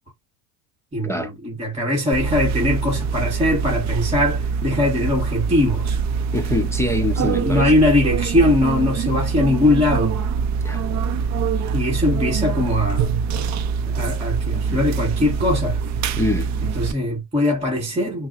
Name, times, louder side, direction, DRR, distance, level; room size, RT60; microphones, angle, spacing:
voice 1, 0.9-6.0 7.2-10.2 11.7-13.1 13.9-15.8 16.6-18.3, left 1 dB, 15° right, 1.3 m, -21 dB
sound 1, 2.1-16.9, right 6 dB, 40° right, 0.5 m, -24 dB
voice 2, 6.3-7.7 10.6-10.9 16.2-16.5, left 1 dB, 5° left, 0.6 m, -24 dB
5.9 x 2.1 x 2.4 m
supercardioid pair, 110°, 48 cm